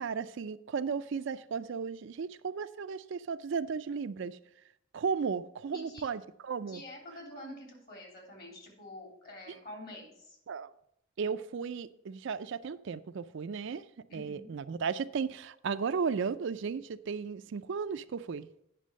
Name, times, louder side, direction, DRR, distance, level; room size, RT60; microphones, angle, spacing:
voice 1, 0.0-4.4 4.9-6.8 10.5-10.7 11.2-13.9 14.1-18.5, right 5 dB, 60° right, 12 dB, 0.4 m, -35 dB
voice 2, 5.7-6.0 6.7-10.4 14.1-14.5, left 1 dB, 45° left, 1 dB, 3.4 m, -47 dB
9.3 x 6.0 x 6.3 m, 0.76 s
head